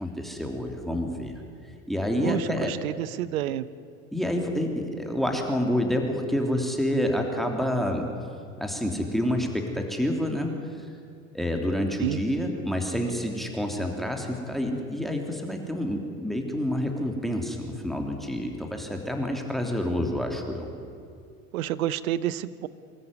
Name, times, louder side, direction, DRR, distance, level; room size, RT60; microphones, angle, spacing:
voice 1, 0.0-1.3 1.9-2.7 4.1-8.1 8.6-10.8 11.3-20.7, left 1 dB, ahead, 3 dB, 3.2 m, -28 dB
voice 2, 2.2-3.7 12.0-12.2 21.5-22.7, right 12 dB, 80° right, 17 dB, 0.9 m, -29 dB
25.5 x 14.0 x 9.6 m, 2.3 s
hypercardioid pair, 80°, 41 cm